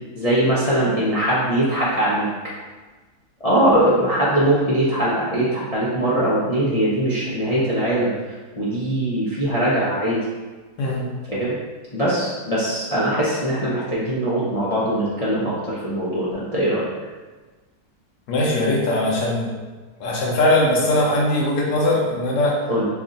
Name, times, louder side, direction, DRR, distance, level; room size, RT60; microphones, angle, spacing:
voice 1, 0.2-2.3 3.4-10.2 11.3-11.5 11.9-16.9 22.7-22.8, right 1 dB, 60° left, -9 dB, 0.3 m, -21 dB
voice 2, 18.3-19.5 20.0-22.5, left 1 dB, 85° left, -3 dB, 1.4 m, -20 dB
3.5 x 2.5 x 3.8 m, 1.3 s
omnidirectional pair, 1.7 m